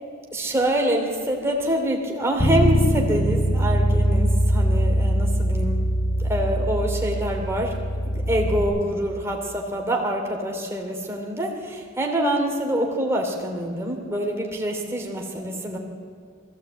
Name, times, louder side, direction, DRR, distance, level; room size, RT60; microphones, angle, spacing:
voice 1, 0.3-5.8 6.2-15.8, equal, 15° right, 0 dB, 2.7 m, -26 dB
Bass guitar, 2.4-8.6, equal, 85° left, 4.3 m, -22 dB
21.0 x 15.5 x 8.1 m, 2.1 s
head